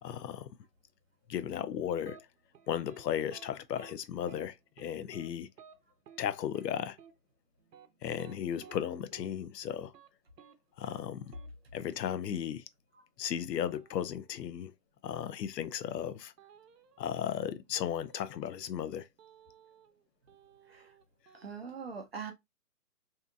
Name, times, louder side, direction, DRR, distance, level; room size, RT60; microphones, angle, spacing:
voice 1, 0.0-0.5 1.3-2.2 2.7-5.5 6.2-7.0 8.0-9.9 10.8-11.3 11.7-12.6 13.2-14.7 15.0-16.3 17.0-19.1, left 9 dB, 80° left, 0.5 m, -35 dB
sound 1, 2.0-2.2 2.5-3.0 3.3-3.5 3.8-3.9 4.3-4.5 4.8-5.3 5.6-5.7 6.1-6.2 6.5-6.7 7.0-7.1 7.6-8.8 9.1-9.3 9.6-10.1 10.4-10.5 10.8-11.0 11.3-11.5 13.6-14.4 16.4-17.1 17.9-18.8 19.2-20.0 20.3-21.5, right 8 dB, 75° right, 0.7 m, -56 dB
voice 2, 21.3-22.3, right 6 dB, 40° right, 0.5 m, -42 dB
2.7 x 2.3 x 2.3 m
hypercardioid pair, 160°, 48 cm